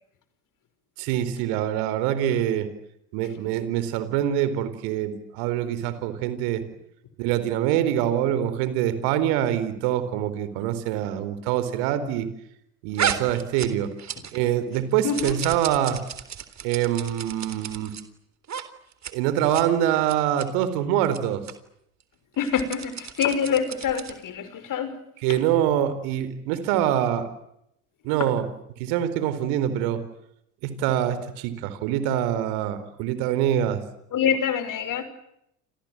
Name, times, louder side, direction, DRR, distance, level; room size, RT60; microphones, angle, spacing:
voice 1, 1.0-2.7 3.1-6.6 7.2-12.3 12.8-13.9 14.3-16.0 16.6-17.9 19.1-21.4 25.2-27.3 28.0-28.5 28.8-30.0 30.6-33.8, right 11 dB, 70° right, 13 dB, 4.5 m, -25 dB
sound 1, 13.0-14.5 14.7-18.0 18.4-18.6 18.9-19.1 19.4-19.6 20.0-20.5 21.0-21.2 21.5-21.6 22.3-24.2, right 8 dB, 40° right, 3.8 m, -33 dB
voice 2, 15.0-15.3 22.4-25.0 28.2-28.3 34.1-35.0, left 7 dB, 50° left, 12 dB, 5.9 m, -25 dB
29.5 x 25.5 x 7.7 m, 0.78 s
hypercardioid pair, 70°, 42 cm